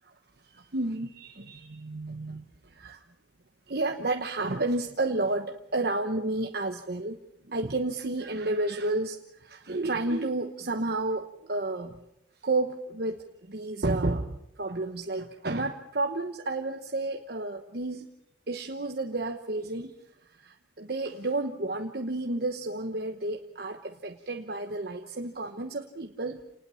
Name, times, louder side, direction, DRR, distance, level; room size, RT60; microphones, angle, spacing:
voice 1, 0.4-3.0 3.7-7.2 7.5-12.0 12.4-18.1 18.5-20.0 20.4-26.4, right 2 dB, 60° right, 4 dB, 1.1 m, -31 dB
28.5 x 20.0 x 5.7 m, 0.84 s
head